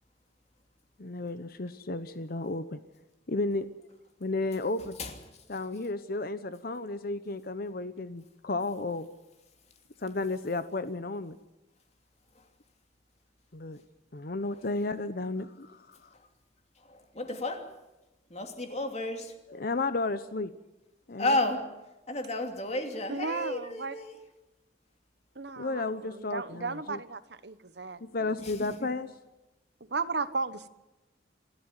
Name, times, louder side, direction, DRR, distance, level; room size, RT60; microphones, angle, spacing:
voice 1, 1.0-2.8 3.3-3.7 4.2-5.0 5.5-9.1 10.0-11.4 13.5-13.8 14.1-16.1 19.5-20.5 21.1-21.4 25.6-27.0 28.0-29.1, left 3 dB, 50° left, 0.9 m, -33 dB
voice 2, 16.8-17.7 18.3-19.3 21.2-21.7 22.1-24.1 28.4-28.9, left 2 dB, 35° left, 2.8 m, -32 dB
voice 3, 23.1-24.0 25.3-28.3 29.9-30.7, right 4 dB, 60° right, 1.1 m, -35 dB
26.5 x 13.0 x 9.7 m
head